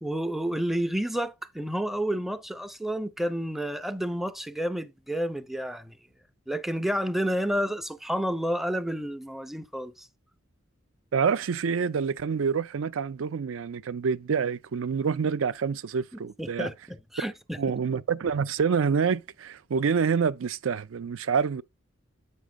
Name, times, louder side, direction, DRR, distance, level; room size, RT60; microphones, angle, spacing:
voice 1, 0.0-6.0 6.5-10.1 16.1-17.6, equal, ahead, 0.5 m, -30 dB
voice 2, 11.1-16.7 17.2-17.3 17.6-21.6, right 6 dB, 80° right, 0.4 m, -27 dB
8.2 x 6.2 x 2.2 m
head